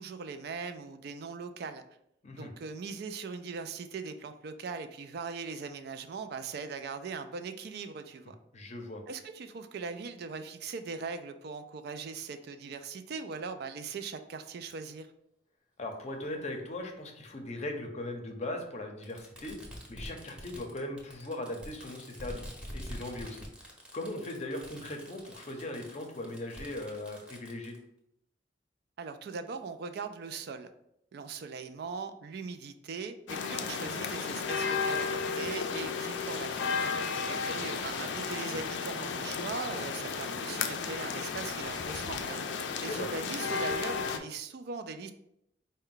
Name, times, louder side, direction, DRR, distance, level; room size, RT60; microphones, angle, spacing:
voice 1, 0.0-1.8 2.4-8.4 9.1-15.1 29.0-30.7 31.1-36.8 37.3-42.4 42.8-45.1, right 5 dB, 60° right, 9 dB, 0.3 m, -40 dB
voice 2, 8.5-9.0 15.8-19.6 19.9-22.5 22.7-23.5 23.9-27.7 37.2-37.6 42.3-42.5 42.9-43.1, left 1 dB, 40° left, 3 dB, 0.6 m, -39 dB
Fireworks, 14.7-14.8 15.9-16.0 17.3-17.4 19.0-27.8, equal, 5° right, 0.7 m, -46 dB
sound 1, 33.3-44.2, left 5 dB, 85° left, 0.4 m, -33 dB
4.5 x 2.1 x 3.8 m, 0.77 s
head